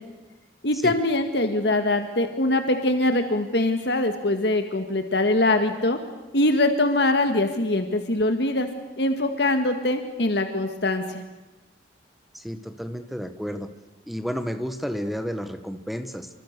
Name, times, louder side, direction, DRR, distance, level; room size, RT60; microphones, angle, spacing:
voice 1, 0.6-6.0 6.3-8.7 9.0-11.2, left 2 dB, 65° left, 6 dB, 1.9 m, -23 dB
voice 2, 12.3-13.7 14.0-16.3, equal, ahead, 9 dB, 1.3 m, -31 dB
27.5 x 25.5 x 6.8 m, 1.1 s
head